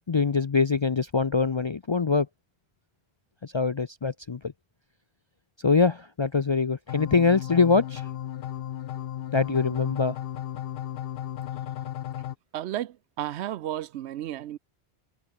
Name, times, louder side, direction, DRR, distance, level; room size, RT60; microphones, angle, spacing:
voice 1, 0.1-2.3 3.4-4.5 5.6-8.0 9.3-10.2, left 4 dB, 40° left, 0.4 m, -24 dB
sound 1, 6.9-12.4, left 11 dB, 65° left, 0.7 m, -35 dB
voice 2, 12.5-14.6, right 12 dB, 80° right, 0.9 m, -33 dB
omnidirectional pair, 1.1 m